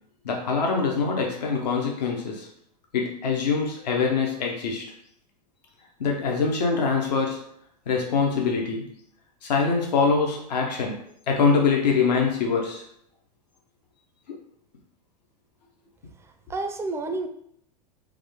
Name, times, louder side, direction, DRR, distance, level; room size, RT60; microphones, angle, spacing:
voice 1, 0.2-2.5 2.9-4.9 6.0-7.4 7.9-8.9 9.4-11.0 11.3-12.8 14.3-14.4, left 5 dB, 80° left, 0 dB, 0.7 m, -24 dB
voice 2, 16.2-17.3, right 3 dB, 15° right, 5 dB, 0.4 m, -30 dB
3.5 x 2.2 x 3.4 m, 0.70 s
hypercardioid pair, 100°, 21 cm